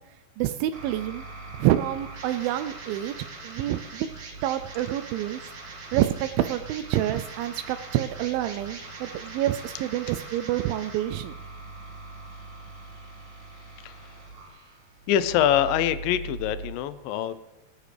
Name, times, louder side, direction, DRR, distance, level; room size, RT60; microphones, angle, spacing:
voice 1, 0.4-1.2 1.6-3.2 3.4-4.1 4.4-5.4 5.9-11.4, right 13 dB, 85° right, 10 dB, 2.1 m, -27 dB
sound 1, 0.7-16.7, right 3 dB, 50° right, 3.1 m, -41 dB
voice 2, 13.8-14.1 15.1-17.3, left 10 dB, 80° left, 13 dB, 2.1 m, -24 dB
20.0 x 10.0 x 3.3 m, 1.1 s
omnidirectional pair, 4.6 m